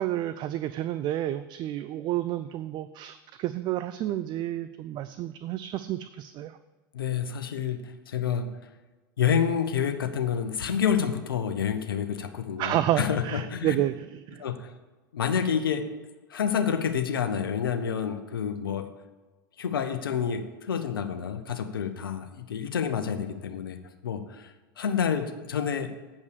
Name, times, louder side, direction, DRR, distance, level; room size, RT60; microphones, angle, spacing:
voice 1, 0.0-6.5 12.6-14.4, right 13 dB, 40° right, 12 dB, 0.4 m, -30 dB
voice 2, 6.9-8.5 9.2-13.8 14.4-14.7 15.1-15.9 16.3-18.9 19.6-25.9, left 7 dB, 80° left, 8 dB, 0.8 m, -28 dB
8.3 x 5.4 x 6.7 m, 1.2 s
hypercardioid pair, 90°, 12 cm